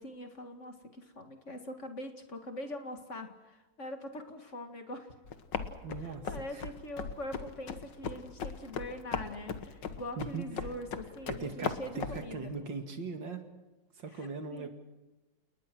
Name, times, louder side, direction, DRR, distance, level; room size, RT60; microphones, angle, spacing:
voice 1, 0.0-5.1 6.0-12.5 14.1-14.7, left 1 dB, 40° left, 5 dB, 2.3 m, -43 dB
sound 1, 5.2-12.2, left 6 dB, 75° left, 2.0 m, -38 dB
voice 2, 5.8-6.6 10.2-10.5 11.3-13.4 14.0-14.7, right 4 dB, 80° right, 6 dB, 2.9 m, -40 dB
29.5 x 19.5 x 6.2 m, 1.1 s
omnidirectional pair, 2.0 m